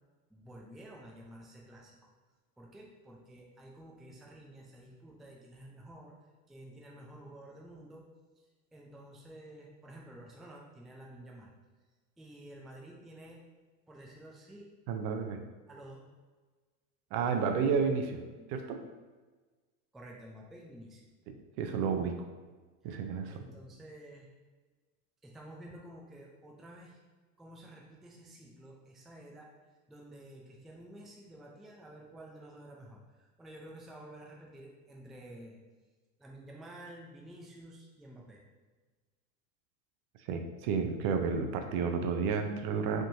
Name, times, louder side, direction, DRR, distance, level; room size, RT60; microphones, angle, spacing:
voice 1, 0.3-2.0 2.6-6.1 6.5-8.1 8.4-11.5 12.2-13.4 13.9-14.7 15.7-16.1 17.2-17.5 17.8-18.5 19.9-21.0 23.3-24.3 25.2-27.0 27.4-29.5 29.9-35.6 36.2-38.4, right 1 dB, ahead, -2 dB, 0.4 m, -51 dB
voice 2, 14.9-15.4 17.1-18.2 18.5-18.8 21.6-22.3 22.8-23.4 40.2-43.0, right 5 dB, 55° right, 5 dB, 0.7 m, -31 dB
5.1 x 3.7 x 2.7 m, 1.3 s
supercardioid pair, 110°, 46 cm